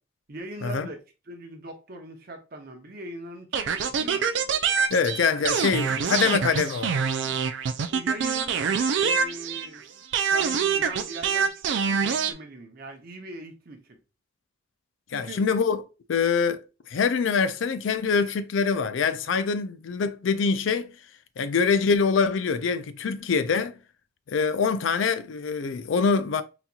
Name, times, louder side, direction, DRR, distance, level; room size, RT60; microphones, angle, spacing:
voice 1, 0.3-1.0 1.3-4.3 7.9-9.8 10.2-14.0 15.1-15.4, right 2 dB, 50° right, 0.8 m, -41 dB
sound 1, 3.5-9.8 10.1-12.3, right 6 dB, 65° right, 0.3 m, -25 dB
voice 2, 4.9-6.9 15.1-15.8 16.1-16.6 16.9-20.9 21.4-23.8 24.3-26.4, left 5 dB, 90° left, 0.4 m, -24 dB
4.0 x 2.8 x 2.3 m
head